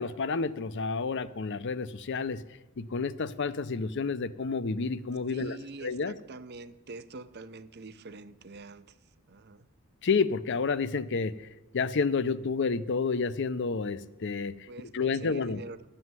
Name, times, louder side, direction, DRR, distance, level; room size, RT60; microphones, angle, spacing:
voice 1, 0.0-2.4 2.8-5.6 5.8-6.1 10.0-11.3 11.7-14.7 14.9-15.6, left 4 dB, 60° left, 15 dB, 0.6 m, -30 dB
voice 2, 5.3-9.0 9.3-9.7 14.7-15.9, right 3 dB, 50° right, 13 dB, 0.7 m, -45 dB
11.5 x 7.8 x 9.4 m, 1.0 s
head